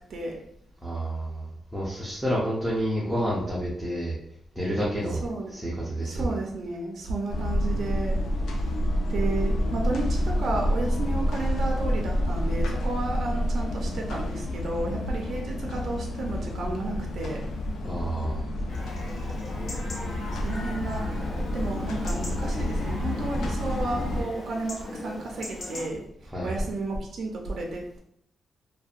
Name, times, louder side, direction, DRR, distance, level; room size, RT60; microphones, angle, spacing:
voice 1, 0.8-4.2 4.6-5.2 5.5-6.4 17.8-18.5 26.3-26.5, equal, 5° right, -7 dB, 0.6 m, -29 dB
voice 2, 5.2-5.5 6.0-8.2 8.5-8.8 9.1-17.4 20.3-21.1 21.5-28.0, right 2 dB, 65° right, 0 dB, 0.4 m, -32 dB
sound 1, 7.3-24.2, left 1 dB, 90° left, 0.3 m, -28 dB
Chatter / Livestock farm animals working animals / Chirp tweet, 18.7-25.9, left 1 dB, 50° left, 0.8 m, -40 dB
2.6 x 2.1 x 2.4 m, 0.69 s
wide cardioid pair, 130°, 0 cm